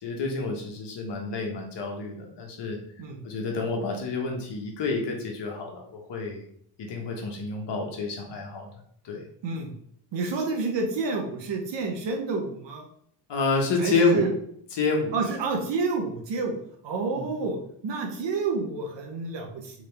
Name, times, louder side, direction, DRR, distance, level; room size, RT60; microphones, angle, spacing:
voice 1, 0.0-2.8 3.2-6.4 6.8-8.7 9.0-9.2 13.3-14.3 14.7-15.1 17.1-17.4, left 3 dB, 60° left, 1 dB, 1.3 m, -28 dB
voice 2, 9.4-9.7 10.1-12.9 13.8-14.3 15.1-16.6 16.8-19.8, right 4 dB, 60° right, 2 dB, 1.2 m, -29 dB
3.7 x 3.4 x 3.4 m, 0.66 s
cardioid pair, 80°, 48 cm